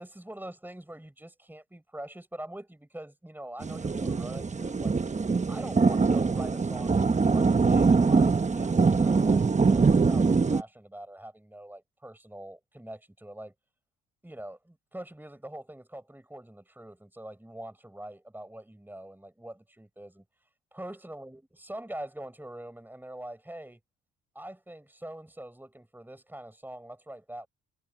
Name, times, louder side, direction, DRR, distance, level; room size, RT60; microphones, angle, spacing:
voice 1, 0.0-4.9 5.5-13.5 14.2-20.2 20.7-23.8 24.3-27.5, right 1 dB, 5° right, 5.3 m, -44 dB
sound 1, 3.6-10.6, right 4 dB, 25° right, 1.2 m, -23 dB
cardioid pair, 90°, 30 cm